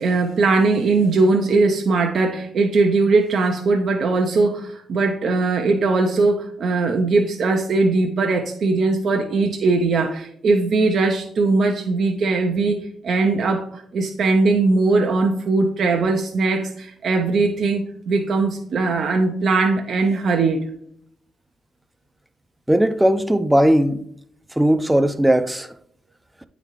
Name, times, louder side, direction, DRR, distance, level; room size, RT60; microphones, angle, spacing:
voice 1, 0.0-20.7, right 3 dB, 65° right, 0.6 m, -20 dB
voice 2, 22.7-24.0 24.6-25.7, right 1 dB, 10° right, 0.5 m, -17 dB
8.8 x 3.9 x 3.1 m
supercardioid pair, 55°, 0 cm